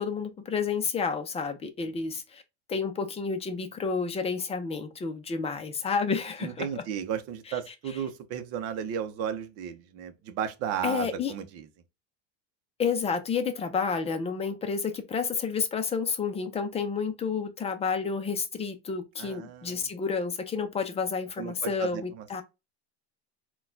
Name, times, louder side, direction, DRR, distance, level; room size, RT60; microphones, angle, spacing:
voice 1, 0.0-2.4 2.7-6.7 10.8-11.3 12.8-22.4, left 5 dB, 20° left, 0.6 m, -30 dB
voice 2, 6.4-11.7 19.2-19.9 21.4-22.4, right 8 dB, 45° right, 0.8 m, -34 dB
4.0 x 2.4 x 2.6 m
supercardioid pair, 120°, 33 cm